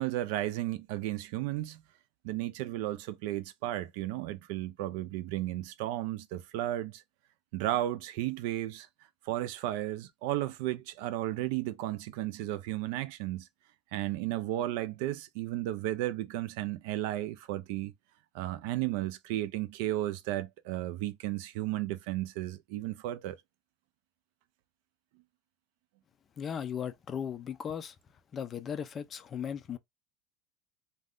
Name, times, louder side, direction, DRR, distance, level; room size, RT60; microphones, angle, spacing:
voice 1, 0.0-1.8 2.2-7.0 7.5-8.9 9.2-13.5 13.9-17.9 18.3-23.4, right 14 dB, 65° right, 0.4 m, -34 dB
voice 2, 26.4-28.0 28.3-29.8, left 8 dB, 25° left, 0.4 m, -37 dB
2.4 x 2.2 x 3.5 m
supercardioid pair, 145°, 0 cm